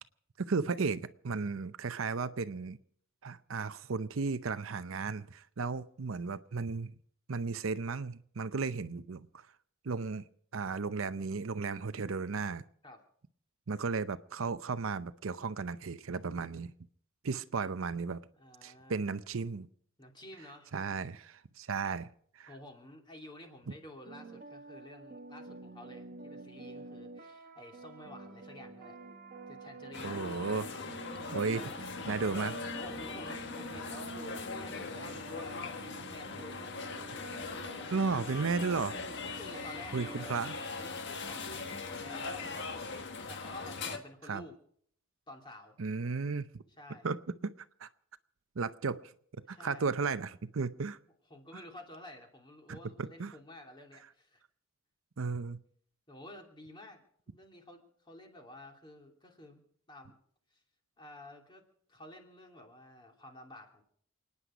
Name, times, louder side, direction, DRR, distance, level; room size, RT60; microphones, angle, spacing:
voice 1, 0.4-2.8 3.2-6.9 7.3-9.5 9.8-10.2 10.5-12.6 13.7-16.7 17.2-18.2 18.6-19.7 20.7-22.1 22.4-22.5 30.0-30.7 31.3-31.7 32.1-32.5 37.9-39.0 39.9-40.5 44.3-44.4 45.8-46.5 47.0-47.5 47.8-47.9 48.6-51.0 51.5-51.6 52.7-53.4 55.2-55.6, right 4 dB, 70° right, 0.6 m, -34 dB
voice 2, 18.4-19.0 20.0-20.7 22.5-29.0 29.5-30.2 30.7-30.8 32.2-32.5 32.8-36.7 39.2-44.5 45.3-45.8 46.8-47.1 49.5-49.9 51.3-54.4 56.1-59.6 59.9-60.2 60.5-60.6 61.0-61.6 61.9-63.9, left 1 dB, 25° left, 2.9 m, -52 dB
sound 1, 24.0-42.5, right 3 dB, 40° right, 1.3 m, -49 dB
sound 2, 29.9-44.0, left 4 dB, 60° left, 1.5 m, -40 dB
29.0 x 9.9 x 5.0 m
head